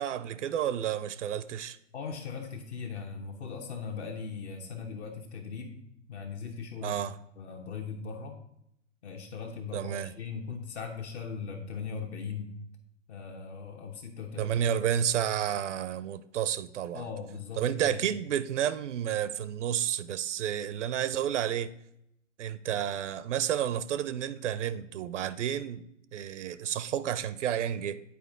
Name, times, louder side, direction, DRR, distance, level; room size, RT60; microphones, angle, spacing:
voice 1, 0.0-1.8 6.8-7.2 9.7-10.1 14.4-17.1 17.6-21.7 22.4-25.8 26.1-28.0, right 10 dB, 65° right, 0.5 m, -31 dB
voice 2, 1.9-5.8 6.1-7.0 7.4-8.4 9.0-12.5 13.1-14.7 16.9-18.0, left 5 dB, 60° left, 1.1 m, -39 dB
8.5 x 4.5 x 3.6 m
figure-of-eight pair, 110°, 38 cm